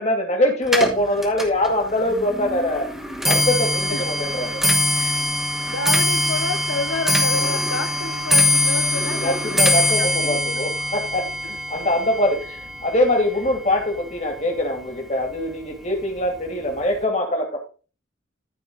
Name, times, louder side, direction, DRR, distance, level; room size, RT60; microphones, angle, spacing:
voice 1, 0.0-2.9 3.3-4.6 9.2-12.4 12.8-17.6, left 1 dB, 35° left, 2 dB, 2.7 m, -23 dB
Clock, 0.7-14.0 14.3-14.8 15.6-15.7 16.0-16.4 16.7-16.8, left 1 dB, ahead, 1.7 m, -22 dB
voice 2, 5.7-10.6, left 3 dB, 80° left, 7 dB, 0.9 m, -30 dB
14.0 x 4.7 x 4.0 m, 0.35 s
head